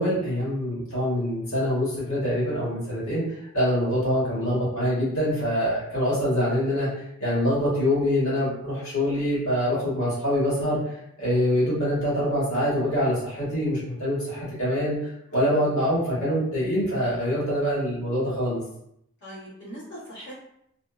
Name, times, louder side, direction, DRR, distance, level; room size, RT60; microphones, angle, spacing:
voice 1, 0.0-3.2 3.5-10.8 11.2-18.6, equal, 70° left, -9 dB, 1.3 m, -25 dB
voice 2, 15.3-15.7 19.2-20.3, equal, 55° left, -10 dB, 1.1 m, -42 dB
2.6 x 2.0 x 2.3 m, 0.75 s
head